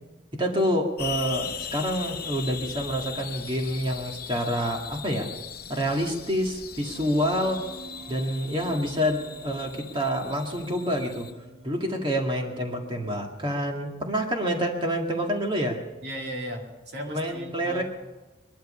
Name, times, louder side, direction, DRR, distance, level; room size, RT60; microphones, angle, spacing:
voice 1, 0.3-5.3 5.7-7.6 8.1-11.3 11.6-15.8 17.1-17.8, equal, 25° right, 2 dB, 1.9 m, -27 dB
sound 1, 1.0-11.3, left 8 dB, 50° left, 1.0 m, -39 dB
sound 2, 6.8-13.8, right 3 dB, 90° right, 2.9 m, -48 dB
voice 2, 16.0-17.8, equal, 55° right, 2 dB, 2.3 m, -36 dB
21.5 x 12.0 x 5.6 m, 1.1 s
head